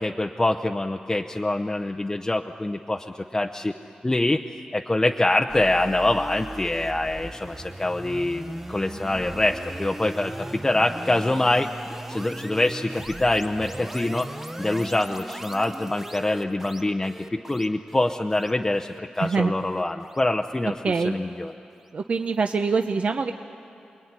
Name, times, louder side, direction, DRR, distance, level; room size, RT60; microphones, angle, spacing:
voice 1, 0.0-3.7 4.0-4.4 4.7-11.7 12.1-14.3 14.6-20.8 21.0-21.5, left 2 dB, 20° left, 3 dB, 0.7 m, -25 dB
sound 1, 5.5-20.7, right 1 dB, 10° right, 0.9 m, -38 dB
voice 2, 19.2-19.5 20.8-21.1 21.9-23.3, right 4 dB, 55° right, 6 dB, 0.8 m, -24 dB
27.5 x 21.5 x 9.7 m, 2.7 s
wide cardioid pair, 100°, 3 cm